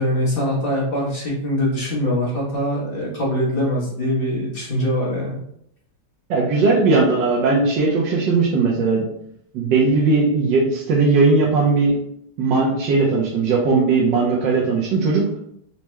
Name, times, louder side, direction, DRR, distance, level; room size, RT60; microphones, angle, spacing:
voice 1, 0.0-5.4, equal, 45° left, -4 dB, 0.8 m, -23 dB
voice 2, 6.3-9.1 9.5-12.0 12.4-15.4, right 3 dB, 80° right, -4 dB, 1.3 m, -18 dB
4.5 x 2.1 x 3.0 m, 0.72 s
omnidirectional pair, 2.0 m